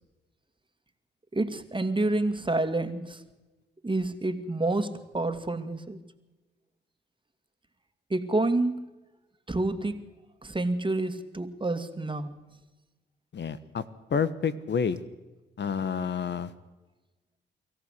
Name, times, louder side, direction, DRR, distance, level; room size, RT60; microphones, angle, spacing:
voice 1, 1.3-3.2 3.8-6.0 8.1-8.9 9.5-10.0 10.4-12.4, right 2 dB, 25° right, 9 dB, 2.4 m, -28 dB
voice 2, 13.3-13.8 14.1-15.0 15.6-16.5, left 6 dB, 60° left, 14 dB, 1.3 m, -29 dB
24.5 x 14.5 x 8.3 m, 1.1 s
supercardioid pair, 50°, 21 cm